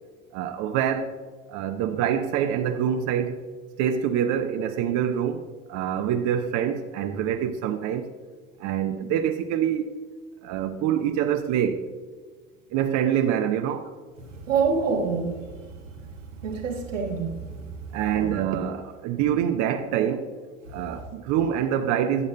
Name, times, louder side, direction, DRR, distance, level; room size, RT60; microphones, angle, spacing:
voice 1, 0.3-1.2 1.5-3.4 3.8-5.4 5.7-8.1 8.6-9.9 10.4-11.9 12.7-13.9 17.9-20.3 20.7-22.3, right 9 dB, 50° right, 0.6 m, -25 dB
voice 2, 14.5-15.4 16.4-17.6 18.1-18.3, right 5 dB, 85° right, 1.5 m, -26 dB
11.0 x 9.4 x 2.2 m
hypercardioid pair, 70°, 37 cm